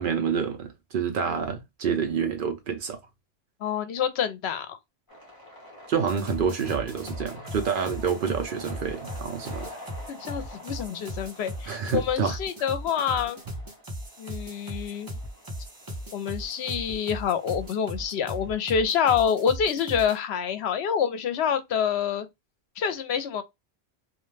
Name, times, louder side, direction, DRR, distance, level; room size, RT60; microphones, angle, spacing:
voice 1, 0.0-3.0 5.9-9.7 11.7-12.4, right 6 dB, 60° right, 0.6 m, -28 dB
voice 2, 3.6-4.8 10.1-13.4 14.2-15.1 16.1-22.3 22.8-23.4, left 7 dB, 80° left, 0.8 m, -27 dB
sound 1, 5.1-19.5, left 1 dB, 20° left, 0.8 m, -48 dB
sound 2, 6.1-20.2, equal, 25° right, 0.6 m, -38 dB
2.3 x 2.2 x 3.1 m
omnidirectional pair, 1.1 m